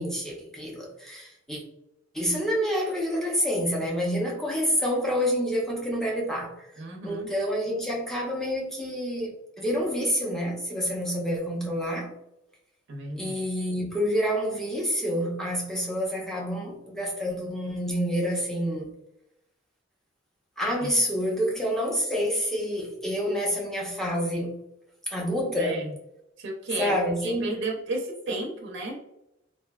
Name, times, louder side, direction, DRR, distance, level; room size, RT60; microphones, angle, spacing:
voice 1, 0.0-1.6 2.1-12.1 13.1-18.9 20.6-24.5 25.1-25.8 26.7-27.6, equal, ahead, -2 dB, 0.6 m, -28 dB
voice 2, 6.8-7.3 12.9-13.3 20.8-20.9 25.6-25.9 26.4-26.9 27.2-29.0, right 2 dB, 60° right, 0 dB, 0.6 m, -33 dB
3.3 x 2.6 x 2.3 m, 0.85 s
head